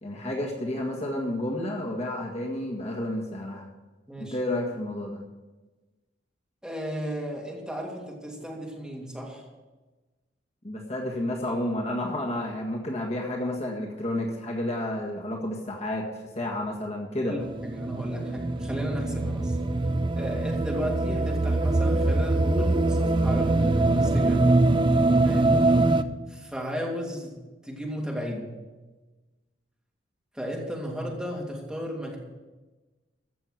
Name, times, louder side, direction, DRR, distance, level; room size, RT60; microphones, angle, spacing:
voice 1, 0.0-3.7 4.2-5.2 10.6-16.1 16.4-17.3, left 1 dB, 35° left, 0 dB, 1.7 m, -31 dB
voice 2, 6.6-9.4 17.3-19.6 20.1-24.5 25.2-25.7 26.3-27.3 27.6-28.5 30.3-32.2, equal, 5° right, -2 dB, 2.9 m, -34 dB
sound 1, 17.4-26.0, right 2 dB, 25° right, 0.6 m, -23 dB
15.0 x 6.7 x 7.6 m, 1.2 s
head